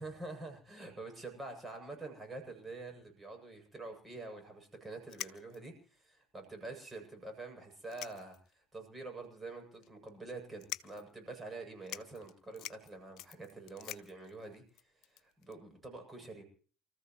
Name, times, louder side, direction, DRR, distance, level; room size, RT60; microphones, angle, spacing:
voice 1, 0.0-16.4, right 3 dB, 20° right, 4 dB, 7.9 m, -47 dB
sound 1, 4.6-4.7 5.1-5.8 6.4-6.5 6.8-6.9 7.7-8.6 9.0-9.1 9.8-10.1 10.6-11.1 11.5-11.6 11.8-15.5, left 13 dB, 60° left, 0.9 m, -46 dB
29.0 x 14.5 x 3.1 m, 0.42 s
hypercardioid pair, 65°, 0 cm